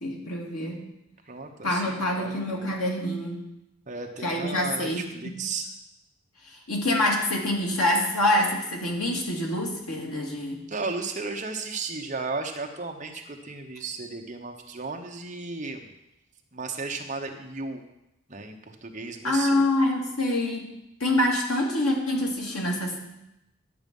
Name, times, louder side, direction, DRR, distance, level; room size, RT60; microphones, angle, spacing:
voice 1, 0.0-0.8 1.6-3.4 4.2-5.4 6.7-10.6 19.2-20.7 21.0-23.0, left 1 dB, 90° left, -1 dB, 2.4 m, -26 dB
voice 2, 1.3-2.7 3.9-5.7 10.7-15.9 16.5-17.8 18.3-19.6, right 3 dB, 35° right, 3 dB, 1.0 m, -34 dB
11.0 x 7.4 x 5.4 m, 0.87 s
head